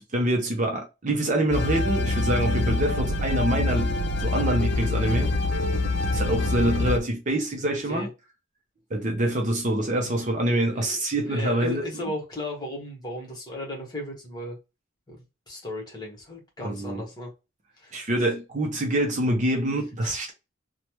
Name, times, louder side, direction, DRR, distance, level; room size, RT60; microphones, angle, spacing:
voice 1, 0.0-5.3 6.1-8.1 8.9-12.1 16.6-17.0 17.9-20.3, right 1 dB, 35° right, 0.5 m, -26 dB
sound 1, 1.5-7.0, left 2 dB, 50° left, 0.4 m, -25 dB
voice 2, 10.6-14.6 15.1-15.2 15.5-17.3 17.8-18.0 20.0-20.1, left 1 dB, 20° left, 1.0 m, -36 dB
3.1 x 2.1 x 2.9 m
head